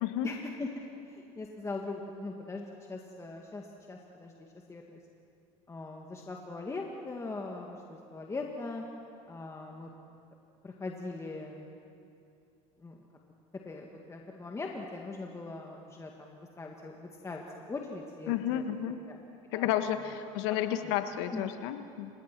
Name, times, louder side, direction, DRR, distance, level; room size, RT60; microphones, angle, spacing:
voice 1, 0.2-5.0 5.7-8.9 9.3-9.9 10.6-11.7 12.8-13.0 13.7-18.6 19.1-19.2 19.5-19.7 20.5-20.6 20.8-20.9 21.3-21.5, left 3 dB, 20° left, 1 dB, 1.9 m, -41 dB
voice 2, 18.3-19.0 19.5-22.1, left 11 dB, 80° left, 9 dB, 1.4 m, -31 dB
29.5 x 17.5 x 6.1 m, 2.5 s
supercardioid pair, 100°, 15 cm